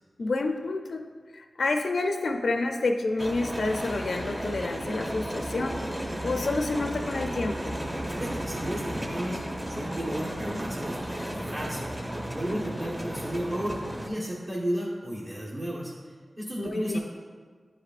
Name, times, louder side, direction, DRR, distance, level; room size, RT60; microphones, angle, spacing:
voice 1, 0.2-1.1 1.3-5.9 6.2-7.8 16.6-17.0, left 2 dB, 75° left, 4 dB, 0.4 m, -29 dB
sound 1, 3.2-14.1, right 1 dB, 15° right, 0.8 m, -34 dB
voice 2, 8.1-9.4 9.7-11.9 12.3-17.0, equal, 50° right, -7 dB, 1.2 m, -33 dB
9.8 x 4.9 x 2.4 m, 1.5 s
wide cardioid pair, 100°, 0 cm